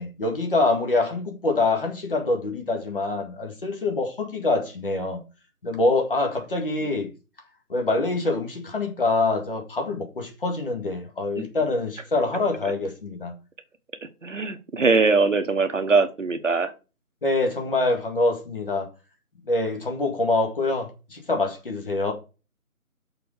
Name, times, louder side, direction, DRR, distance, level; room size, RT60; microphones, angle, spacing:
voice 1, 0.0-5.2 5.6-7.1 7.7-13.4 17.2-18.9 19.4-22.1, left 2 dB, 40° left, 1.9 m, -25 dB
voice 2, 14.0-16.7, right 4 dB, 60° right, 1.1 m, -22 dB
6.6 x 4.2 x 6.4 m
figure-of-eight pair, 165°, 43 cm